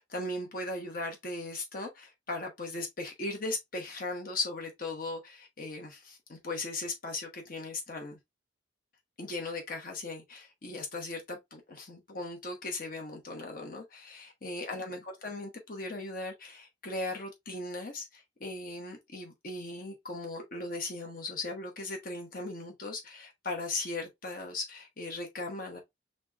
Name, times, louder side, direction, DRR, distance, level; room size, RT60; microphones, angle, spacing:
voice 1, 0.0-8.2 9.2-25.8, left 2 dB, 45° left, 1.0 m, -38 dB
4.4 x 3.7 x 2.3 m
head